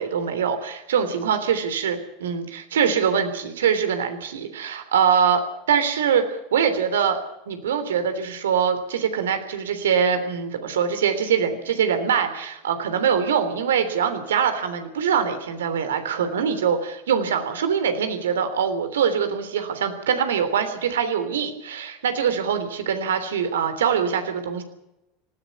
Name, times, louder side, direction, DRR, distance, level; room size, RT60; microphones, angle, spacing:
voice 1, 0.0-7.2 7.5-24.6, right 7 dB, 80° right, 9 dB, 3.3 m, -23 dB
19.0 x 15.5 x 9.5 m, 0.88 s
hypercardioid pair, 85°, 0 cm